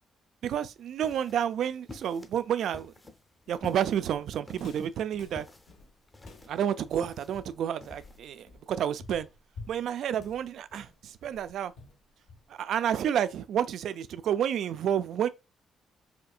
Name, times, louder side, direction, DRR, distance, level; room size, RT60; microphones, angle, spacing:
voice 1, 0.4-2.9 3.5-5.5 6.5-9.3 9.7-11.7 12.5-15.3, right 9 dB, 70° right, 0.3 m, -30 dB
sound 1, 0.8-8.2, left 2 dB, 20° left, 0.6 m, -50 dB
Walk footsteps, 3.5-12.7, left 3 dB, 70° left, 0.9 m, -50 dB
4.3 x 2.5 x 2.3 m
cardioid pair, 90°, 0 cm